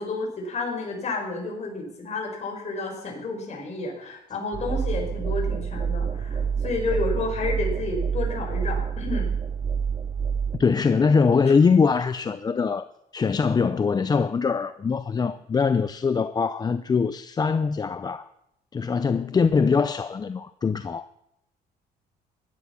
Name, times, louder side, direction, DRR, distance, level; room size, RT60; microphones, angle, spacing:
voice 1, 0.0-9.3, left 3 dB, 40° left, 5.5 m, -31 dB
sound 1, 4.5-10.6, right 6 dB, 30° right, 2.1 m, -27 dB
voice 2, 10.6-12.9 13.1-18.3 18.7-21.1, left 5 dB, 25° left, 0.5 m, -22 dB
15.5 x 11.5 x 5.9 m
cardioid pair, 110°, 17 cm